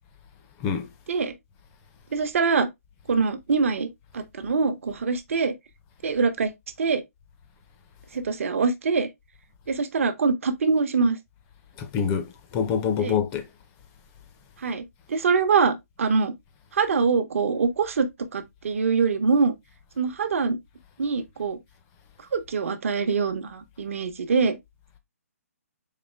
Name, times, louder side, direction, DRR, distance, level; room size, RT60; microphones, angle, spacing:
voice 1, 2.1-2.7 3.1-5.5 6.0-6.5 6.8-7.0 8.1-9.1 9.7-11.2 13.0-13.2 14.6-16.3 16.7-19.5 20.0-20.6 21.0-21.6 22.3-24.6, right 5 dB, 55° right, 0.8 m, -24 dB
voice 2, 11.8-13.5, left 7 dB, 15° left, 0.5 m, -26 dB
4.2 x 3.2 x 3.2 m
hypercardioid pair, 170°, 9 cm